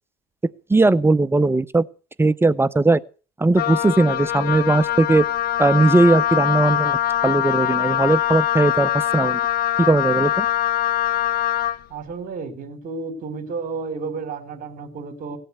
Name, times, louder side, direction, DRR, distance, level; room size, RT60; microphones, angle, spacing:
voice 1, 0.7-1.9 2.2-3.0 3.4-5.2 5.6-7.0 7.2-9.4 9.8-10.5, right 2 dB, 15° right, 0.7 m, -18 dB
Wind instrument woodwind instrument, 3.5-11.8, left 12 dB, 60° left, 1.1 m, -23 dB
voice 2, 11.9-15.4, right 4 dB, 55° right, 4.0 m, -32 dB
17.5 x 7.7 x 8.2 m
supercardioid pair, 90°, 17 cm